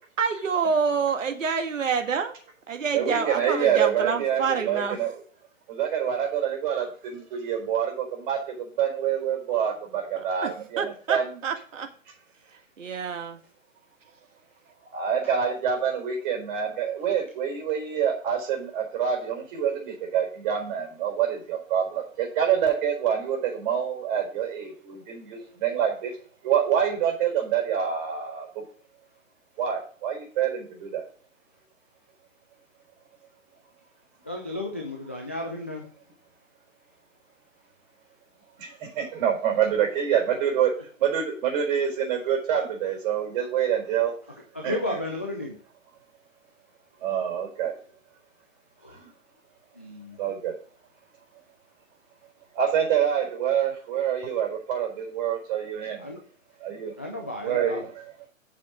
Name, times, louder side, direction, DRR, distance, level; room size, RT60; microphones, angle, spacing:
voice 1, 0.2-2.4 2.7-5.0 10.2-10.5 10.8-11.9 12.8-13.4, right 5 dB, 70° right, 6 dB, 1.9 m, -27 dB
voice 2, 2.9-5.2 5.7-11.4 14.9-26.1 26.4-28.5 29.6-31.0 38.6-44.1 44.6-45.0 47.0-47.7 49.0-49.1 50.2-50.5 52.5-56.0 56.6-56.9 57.4-58.1, right 8 dB, 40° right, 2 dB, 4.4 m, -26 dB
voice 3, 34.2-35.8 44.5-45.5 48.8-49.0 49.8-50.2 56.0-56.2 57.0-57.8, left 1 dB, 10° left, 0 dB, 0.3 m, -33 dB
8.2 x 7.1 x 4.9 m, 0.42 s
figure-of-eight pair, 130°, 39 cm